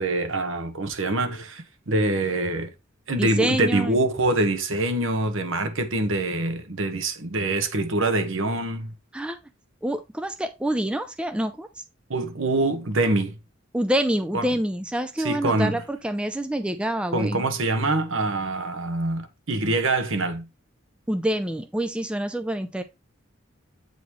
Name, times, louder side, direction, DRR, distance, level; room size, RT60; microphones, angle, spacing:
voice 1, 0.0-2.7 3.1-8.9 12.1-13.4 14.3-14.4 15.2-15.8 17.1-20.5, right 2 dB, 65° right, 1.1 m, -25 dB
voice 2, 3.2-4.0 9.1-9.4 9.8-11.8 13.7-17.4 21.1-22.8, right 1 dB, 5° right, 0.3 m, -27 dB
8.3 x 4.0 x 3.0 m
head